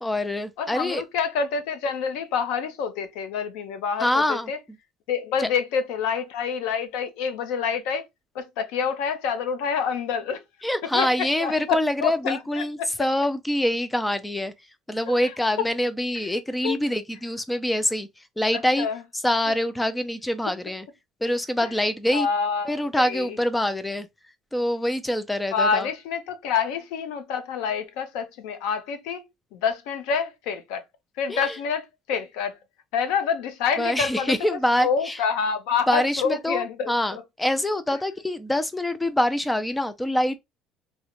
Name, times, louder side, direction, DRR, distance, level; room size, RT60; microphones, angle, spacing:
voice 1, 0.0-1.0 4.0-4.5 5.4-5.5 10.6-14.5 14.9-18.9 19.1-20.9 21.2-22.3 22.7-24.1 24.5-25.9 31.3-31.6 33.8-35.2 35.9-40.4, left 1 dB, 5° left, 0.3 m, -25 dB
voice 2, 0.6-4.6 5.1-8.0 8.3-10.4 10.9-11.1 11.4-12.6 16.6-16.8 18.5-19.0 22.1-23.4 25.5-29.2 29.5-30.8 31.2-32.6 32.9-34.3 34.8-37.2, left 6 dB, 85° left, 0.6 m, -27 dB
3.7 x 2.1 x 2.9 m
cardioid pair, 170°, 0 cm